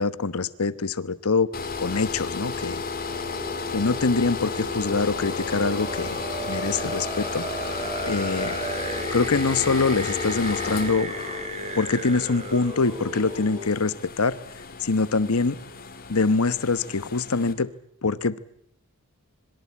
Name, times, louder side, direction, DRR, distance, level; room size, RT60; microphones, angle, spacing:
voice 1, 0.0-1.5 1.8-2.8 3.7-7.4 8.0-8.6 9.1-11.1 11.7-14.4 14.8-15.6 16.1-17.7 18.0-18.4, left 4 dB, 80° left, 16 dB, 1.1 m, -24 dB
sound 1, 1.5-17.5, left 5 dB, 45° left, 3.5 m, -33 dB
sound 2, 3.1-13.7, right 1 dB, 30° right, 5.2 m, -35 dB
26.0 x 23.0 x 8.6 m, 0.71 s
head